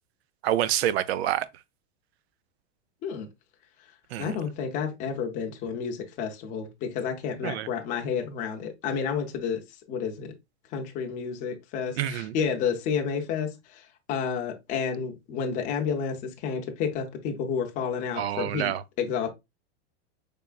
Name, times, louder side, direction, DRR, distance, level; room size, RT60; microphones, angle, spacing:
voice 1, 0.4-1.5 4.1-4.3 7.4-7.7 12.0-12.3 18.2-18.8, right 12 dB, 65° right, 0.5 m, -27 dB
voice 2, 4.2-9.6 9.9-10.3 10.7-18.7 19.0-19.3, left 6 dB, 25° left, 0.6 m, -30 dB
5.3 x 3.5 x 2.4 m
supercardioid pair, 165°, 34 cm